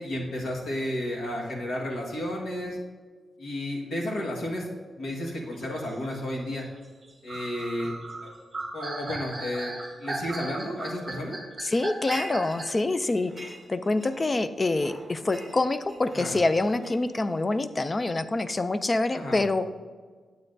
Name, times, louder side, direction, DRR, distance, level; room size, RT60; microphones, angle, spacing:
voice 1, 0.0-2.8 3.4-4.7 4.9-6.6 7.2-7.9 8.2-8.3 8.7-9.7 10.0-11.4 16.1-16.3 19.1-19.4, left 1 dB, 75° left, -2 dB, 1.5 m, -32 dB
sound 1, 5.1-12.9, right 2 dB, 25° right, 1.3 m, -37 dB
voice 2, 11.6-19.7, left 2 dB, 20° left, 11 dB, 0.3 m, -26 dB
sound 2, 11.7-12.8 13.1-14.4 14.8-17.4, right 1 dB, 5° left, 2.4 m, -43 dB
9.7 x 8.0 x 2.6 m, 1.5 s
wide cardioid pair, 165°, 0 cm